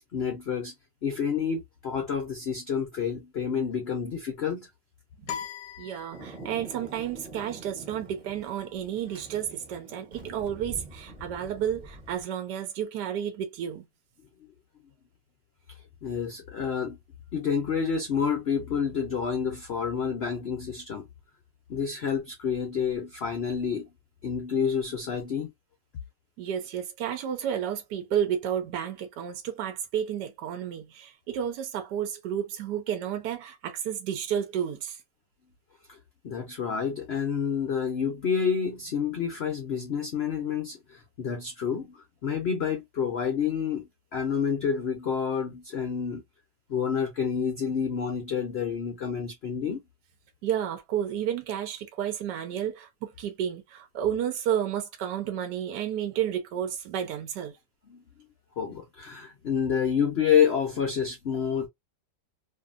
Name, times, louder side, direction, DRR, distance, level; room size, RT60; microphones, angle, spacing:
voice 1, 0.1-0.7 1.0-4.7 15.7-17.0 17.3-21.1 21.7-23.9 24.2-25.5 35.9-36.0 36.2-46.2 46.7-49.8 57.9-58.0 58.6-61.7, left 7 dB, 65° left, 0.6 m, -29 dB
sound 1, 5.3-6.7, left 8 dB, 85° left, 1.2 m, -39 dB
voice 2, 5.8-13.8 26.4-35.0 50.4-57.6, right 9 dB, 75° right, 1.2 m, -31 dB
Thunder, 6.1-12.2, right 1 dB, 30° right, 1.0 m, -45 dB
2.7 x 2.7 x 2.3 m
omnidirectional pair, 1.9 m